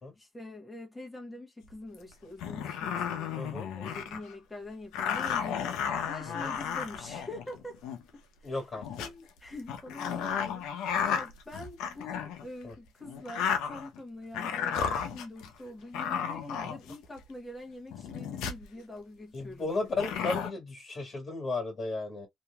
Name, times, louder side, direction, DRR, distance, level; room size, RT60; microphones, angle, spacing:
voice 1, 0.2-5.7 6.1-7.8 8.1-8.5 9.0-19.7, left 1 dB, 15° left, 1.1 m, -45 dB
sound 1, 1.9-2.0 2.4-4.3 4.9-8.0 8.6-9.1 9.7-12.4 13.0-14.0 14.3-15.5 15.9-17.2 17.9-18.6 19.9-20.5, left 7 dB, 85° left, 0.7 m, -33 dB
voice 2, 3.4-3.7 6.4-6.5 8.4-8.9 12.6-12.7 16.6-16.7 19.3-22.3, left 3 dB, 45° left, 1.7 m, -34 dB
2.8 x 2.7 x 2.3 m
supercardioid pair, 70°, 0 cm